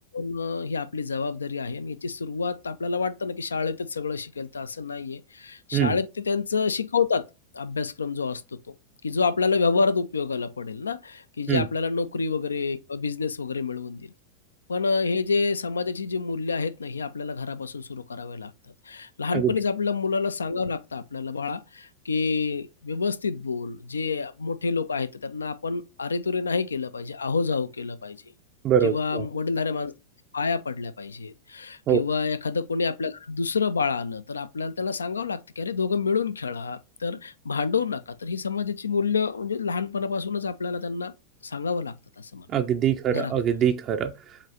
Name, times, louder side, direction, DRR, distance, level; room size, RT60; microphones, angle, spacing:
voice 1, 0.1-7.2 7.5-8.4 8.7-8.8 9.0-14.1 14.7-18.5 18.9-28.2 28.8-29.9 30.3-41.1 41.4-42.5 43.1-43.3, left 4 dB, 75° left, 0.3 m, -28 dB
voice 2, 28.6-29.3 31.9-32.0 42.5-44.1, right 9 dB, 30° right, 0.4 m, -23 dB
7.3 x 2.6 x 2.8 m
figure-of-eight pair, 90°, 0 cm